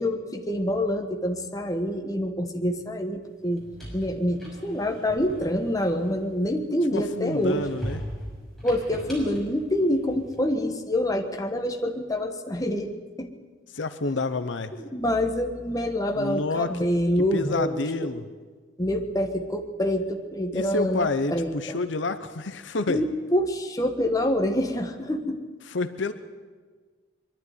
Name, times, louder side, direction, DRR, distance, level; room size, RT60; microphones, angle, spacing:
voice 1, 0.0-3.7 3.9-7.6 8.6-12.9 13.2-13.3 14.9-18.1 18.8-21.8 22.9-25.4, left 1 dB, 20° left, 4 dB, 1.4 m, -26 dB
sound 1, 3.4-6.7 7.1-10.5, equal, ahead, 6.2 m, -40 dB
voice 2, 6.9-8.0 13.7-14.7 16.2-16.8 17.3-18.3 20.5-23.0 25.7-26.1, left 3 dB, 65° left, 11 dB, 0.8 m, -28 dB
22.5 x 12.0 x 9.5 m, 1.4 s
head